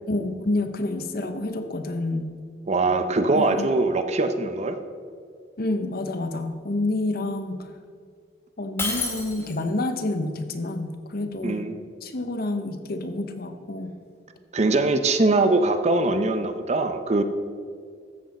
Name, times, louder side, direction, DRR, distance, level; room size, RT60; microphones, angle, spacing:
voice 1, 0.1-2.3 3.3-3.8 5.6-7.7 8.6-11.7 12.0-13.9, left 2 dB, 55° left, 8 dB, 0.8 m, -28 dB
voice 2, 2.7-4.8 11.4-11.8 14.5-17.2, right 2 dB, 35° right, 9 dB, 0.6 m, -22 dB
Shatter, 8.8-9.8, left 3 dB, 15° left, 1.9 m, -29 dB
13.5 x 8.0 x 4.2 m, 2.2 s
head